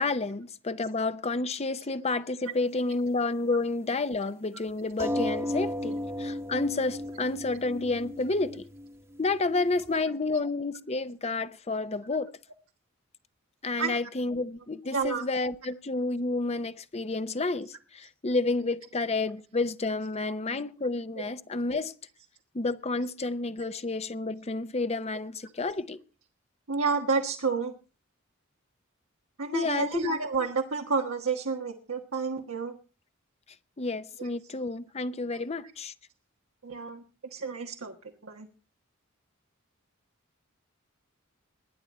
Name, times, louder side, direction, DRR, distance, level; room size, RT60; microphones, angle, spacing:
voice 1, 0.0-8.6 9.2-12.4 13.6-21.9 22.5-26.0 29.5-30.1 33.8-35.9, left 3 dB, 30° left, 0.7 m, -30 dB
sound 1, 5.0-10.0, left 1 dB, 15° right, 1.1 m, -34 dB
voice 2, 14.9-15.2 26.7-27.7 29.4-32.8 34.2-34.3 35.3-35.4 36.6-37.0 37.3-37.9 38.2-38.5, right 4 dB, 90° right, 1.4 m, -30 dB
22.0 x 10.0 x 4.2 m
head